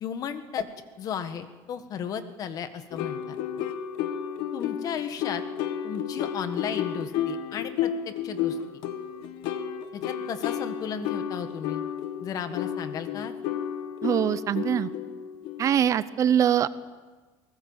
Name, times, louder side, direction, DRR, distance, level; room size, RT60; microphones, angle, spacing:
voice 1, 0.0-0.7 1.0-3.4 4.5-5.4 5.8-8.6 9.9-11.8 12.2-13.3, left 7 dB, 45° left, 10 dB, 1.6 m, -34 dB
sound 1, 2.9-15.9, left 9 dB, 70° left, 1.4 m, -32 dB
voice 2, 14.0-14.9 15.6-16.7, right 9 dB, 40° right, 16 dB, 0.7 m, -23 dB
22.5 x 19.0 x 7.3 m, 1.3 s
cardioid pair, 140°, 9 cm